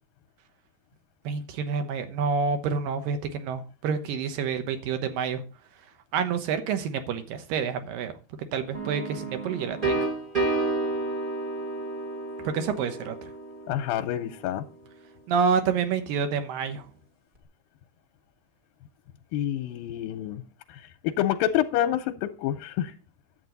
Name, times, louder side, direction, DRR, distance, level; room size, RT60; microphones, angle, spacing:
voice 1, 1.2-5.4 6.1-8.1 8.5-10.0 12.4-13.2 15.3-16.9, right 6 dB, 75° right, 2.8 m, -28 dB
sound 1, 8.7-14.4, right 3 dB, 35° right, 0.7 m, -31 dB
voice 2, 13.7-14.6 19.3-20.4 20.7-22.9, left 12 dB, 85° left, 2.4 m, -28 dB
11.0 x 8.0 x 4.0 m
omnidirectional pair, 4.1 m